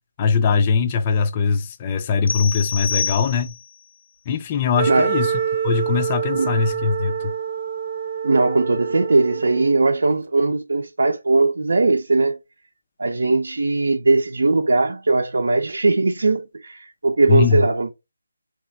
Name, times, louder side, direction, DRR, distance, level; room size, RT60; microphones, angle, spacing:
voice 1, 0.2-3.5 4.3-5.3 5.6-7.3 17.3-17.6, left 5 dB, 20° left, 0.3 m, -21 dB
sound 1, 2.3-3.8, left 6 dB, 85° left, 0.5 m, -27 dB
Wind instrument woodwind instrument, 4.7-9.9, right 7 dB, 40° right, 0.8 m, -26 dB
voice 2, 8.2-12.4 13.0-17.9, right 3 dB, 65° right, 0.6 m, -19 dB
3.0 x 2.4 x 3.8 m
figure-of-eight pair, 165°, 0 cm